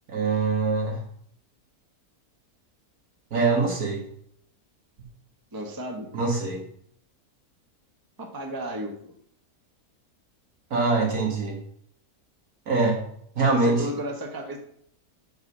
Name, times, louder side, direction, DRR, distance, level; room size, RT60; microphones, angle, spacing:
voice 1, 0.1-1.0 3.3-4.1 6.1-6.6 10.7-11.6 12.7-13.0 13.4-13.9, right 3 dB, 70° right, 0 dB, 2.2 m, -23 dB
voice 2, 5.5-6.1 8.2-8.9 13.5-14.6, right 1 dB, 15° right, 2 dB, 1.0 m, -33 dB
6.0 x 5.4 x 6.7 m, 0.66 s
omnidirectional pair, 1.6 m